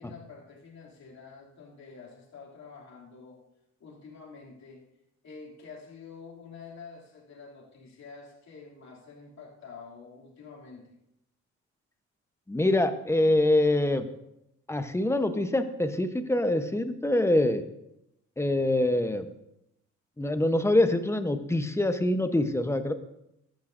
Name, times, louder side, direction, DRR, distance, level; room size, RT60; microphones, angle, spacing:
voice 1, 0.0-3.4 3.8-4.8 5.2-10.9, left 5 dB, 65° left, -3 dB, 2.8 m, -48 dB
voice 2, 12.5-14.1 14.7-17.6 18.4-19.3 20.2-22.9, left 1 dB, 10° left, 9 dB, 0.8 m, -25 dB
14.0 x 10.5 x 2.6 m, 0.83 s
cardioid pair, 90°, 30 cm